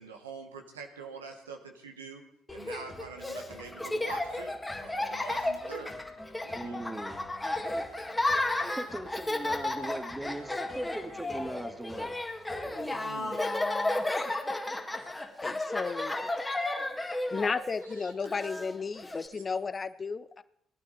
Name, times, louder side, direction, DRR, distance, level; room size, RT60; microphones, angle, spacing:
voice 1, 0.0-2.2 2.5-4.6 4.8-6.0 6.4-6.8 12.8-13.4 17.8-18.5 19.4-19.5, right 4 dB, 85° right, 3 dB, 1.3 m, -45 dB
Laughter, 2.5-19.3, left 2 dB, 15° left, 2.0 m, -33 dB
voice 2, 6.5-7.2 8.7-12.1, right 1 dB, 15° right, 8 dB, 1.9 m, -39 dB
voice 3, 15.4-16.4 17.3-20.4, left 5 dB, 35° left, 15 dB, 0.7 m, -34 dB
19.0 x 11.5 x 4.1 m, 0.73 s
figure-of-eight pair, 45°, 0 cm